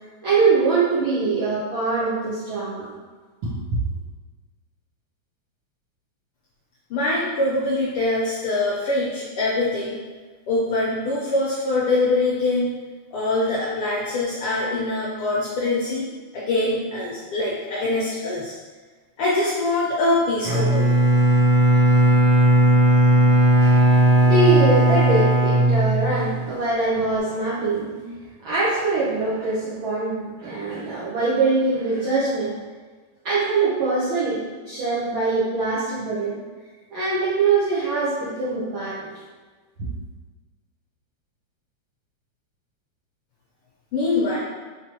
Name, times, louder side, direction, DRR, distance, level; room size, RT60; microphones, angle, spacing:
voice 1, 0.2-2.9 3.4-3.5 23.6-28.2 28.4-32.6 33.2-36.4 36.9-39.1, right 3 dB, 70° right, -10 dB, 1.2 m, -23 dB
voice 2, 6.9-10.0 10.5-12.8 13.1-18.5 19.2-20.9 43.9-44.4, left 2 dB, 75° left, -6 dB, 1.3 m, -23 dB
Bowed string instrument, 20.4-26.5, right 1 dB, 90° right, 0.9 m, -16 dB
4.5 x 3.9 x 2.9 m, 1.4 s
omnidirectional pair, 3.3 m